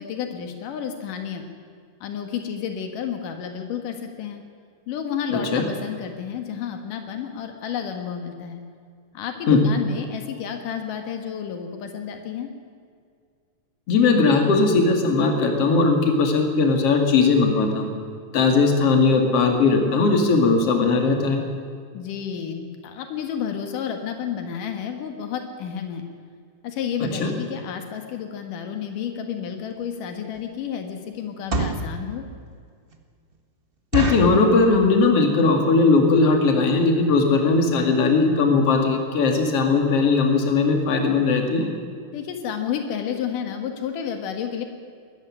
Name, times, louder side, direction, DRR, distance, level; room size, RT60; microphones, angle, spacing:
voice 1, 0.0-1.4 2.0-4.4 4.9-8.6 9.1-12.5 21.9-26.1 26.6-32.2 42.1-44.7, left 8 dB, 85° left, 6 dB, 3.1 m, -31 dB
voice 2, 5.3-5.6 9.5-9.6 13.9-17.9 18.3-21.4 27.2-27.3 33.9-41.7, left 4 dB, 50° left, 3 dB, 3.3 m, -19 dB
sound 1, 29.7-29.8 30.3-30.6 31.3-31.9 32.5-32.6 32.9-33.0 33.3-33.4 33.9-34.4 35.0-35.3 35.6-35.7 35.9-36.2 36.7-36.8 37.0-37.2 37.6-37.7 37.9-38.0, right 2 dB, 50° right, 0.6 m, -26 dB
20.0 x 14.0 x 9.7 m, 2.1 s
omnidirectional pair, 3.6 m